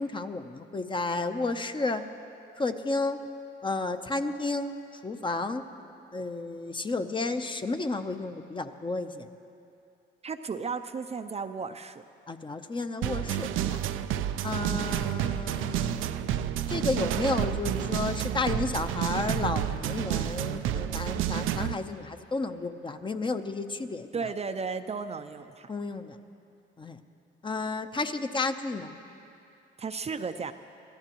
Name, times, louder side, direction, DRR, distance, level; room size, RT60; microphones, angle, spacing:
voice 1, 0.0-2.0 2.6-3.2 3.6-4.7 5.0-5.6 6.1-9.3 12.3-13.8 14.4-16.0 16.7-24.1 25.7-26.2 26.8-27.0 27.4-29.0, left 3 dB, 25° left, 8 dB, 0.7 m, -32 dB
voice 2, 10.2-12.0 14.6-14.8 24.1-25.7 29.8-30.5, right 5 dB, 30° right, 8 dB, 0.5 m, -34 dB
sound 1, 13.0-21.7, right 11 dB, 85° right, 0.5 m, -30 dB
25.5 x 16.0 x 3.0 m, 2.7 s
cardioid pair, 90°, 20 cm